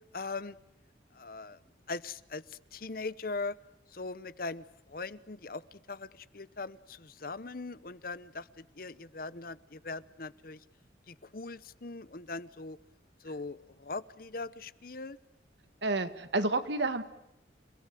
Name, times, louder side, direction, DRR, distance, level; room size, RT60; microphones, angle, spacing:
voice 1, 0.1-0.5 1.1-1.6 1.9-3.6 3.9-4.6 4.9-10.6 11.1-12.8 13.2-15.2, left 3 dB, 50° left, 17 dB, 0.9 m, -40 dB
voice 2, 15.8-17.0, right 2 dB, 75° right, 10 dB, 2.1 m, -30 dB
29.5 x 18.0 x 9.2 m, 0.85 s
head